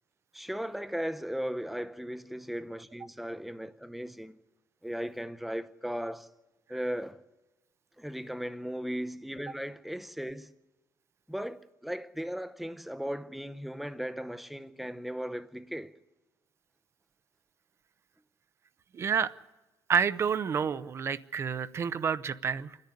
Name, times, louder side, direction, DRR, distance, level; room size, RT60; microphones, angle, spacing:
voice 1, 0.3-4.4 4.8-6.3 6.7-7.2 8.0-10.5 11.3-15.9, equal, ahead, 0.7 m, -37 dB
voice 2, 18.9-19.3 19.9-22.8, right 7 dB, 35° right, 0.6 m, -29 dB
28.0 x 10.5 x 9.8 m
cardioid pair, 140°, 7 cm